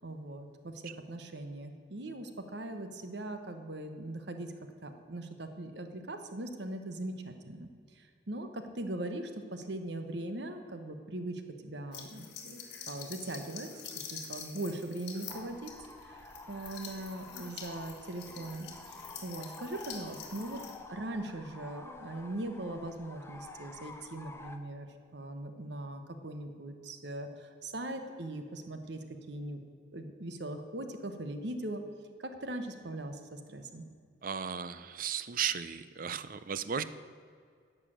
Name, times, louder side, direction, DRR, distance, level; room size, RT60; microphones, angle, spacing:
voice 1, 0.0-4.5 4.8-15.7 16.0-20.6 20.9-29.6 29.9-31.8 32.2-33.8, right 1 dB, 65° right, 7 dB, 1.0 m, -40 dB
sound 1, 11.9-20.8, left 6 dB, 60° left, 1.8 m, -46 dB
sound 2, 15.3-24.6, left 3 dB, 15° left, 0.7 m, -50 dB
voice 2, 34.2-36.8, right 8 dB, 45° right, 14 dB, 0.5 m, -35 dB
11.0 x 6.7 x 8.8 m, 2.2 s
head